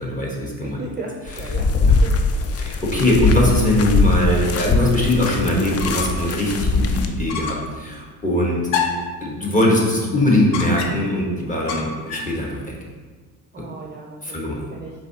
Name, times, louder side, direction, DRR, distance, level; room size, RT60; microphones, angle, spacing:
voice 1, 0.0-0.8 1.8-2.0 2.6-8.6 9.2-12.7 13.6-13.7 14.2-14.6, left 1 dB, 15° left, -3 dB, 1.3 m, -21 dB
voice 2, 0.6-2.1 13.5-14.9, right 3 dB, 20° right, -1 dB, 0.5 m, -35 dB
sound 1, 1.3-7.1, left 3 dB, 35° left, 0.4 m, -21 dB
sound 2, 5.8-6.3 6.7-6.8 7.3-7.7 8.7-9.2 10.5-11.2 11.7-12.4, left 5 dB, 70° left, 0.7 m, -27 dB
4.9 x 3.6 x 2.9 m, 1.4 s
hypercardioid pair, 65°, 47 cm